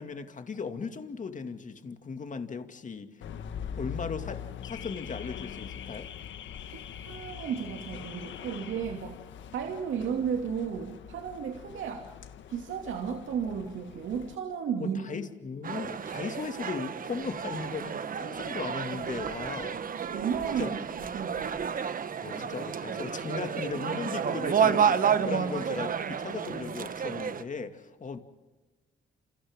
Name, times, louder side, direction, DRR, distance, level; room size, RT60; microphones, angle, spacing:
voice 1, 0.0-3.1 3.8-6.1 14.8-19.8 20.5-20.8 22.2-28.2, left 5 dB, 40° left, 7 dB, 2.3 m, -37 dB
Car / Alarm, 3.2-14.4, left 8 dB, 70° left, 1.7 m, -42 dB
voice 2, 6.7-9.2 9.5-12.1 12.5-15.0 20.0-21.6 24.0-24.1 25.2-25.5, right 7 dB, 80° right, 2 dB, 2.6 m, -34 dB
sound 1, 15.6-27.4, right 7 dB, 45° right, 1.2 m, -31 dB
29.0 x 28.5 x 3.7 m, 1.2 s
cardioid pair, 90°, 20 cm